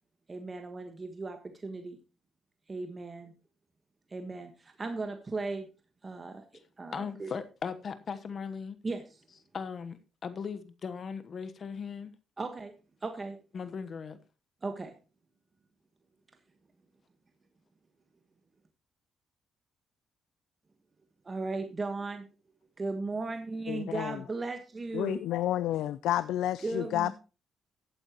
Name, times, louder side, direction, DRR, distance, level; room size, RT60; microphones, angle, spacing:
voice 1, 0.3-1.4 1.6-2.0 2.7-3.3 4.1-5.7 6.0-6.4 6.8-7.3 8.8-9.0 12.4-12.7 13.0-13.4 14.6-14.9 21.2-22.2 22.8-25.2 26.6-27.1, right 3 dB, 30° right, 1.4 m, -36 dB
voice 2, 6.9-8.8 9.5-12.1 13.5-14.2, left 6 dB, 50° left, 1.1 m, -38 dB
voice 3, 23.7-24.2 24.9-27.1, left 13 dB, 85° left, 0.4 m, -30 dB
14.5 x 8.9 x 3.0 m
cardioid pair, 90°, 0 cm